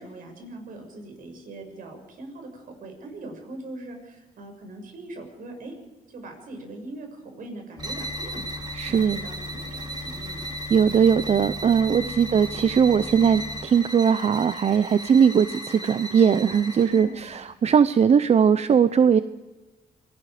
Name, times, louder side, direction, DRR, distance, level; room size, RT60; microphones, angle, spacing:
voice 1, 0.0-5.7 6.1-10.5 12.0-12.2 16.9-17.3, right 2 dB, 70° right, 4 dB, 6.5 m, -41 dB
sound 1, 7.8-13.7, left 3 dB, 20° left, 2.1 m, -40 dB
sound 2, 7.8-17.1, right 1 dB, 30° right, 3.2 m, -36 dB
voice 2, 8.8-9.2 10.7-19.2, right 7 dB, 45° right, 13 dB, 0.7 m, -20 dB
27.0 x 19.5 x 5.1 m, 1.2 s
cardioid pair, 95°, 15 cm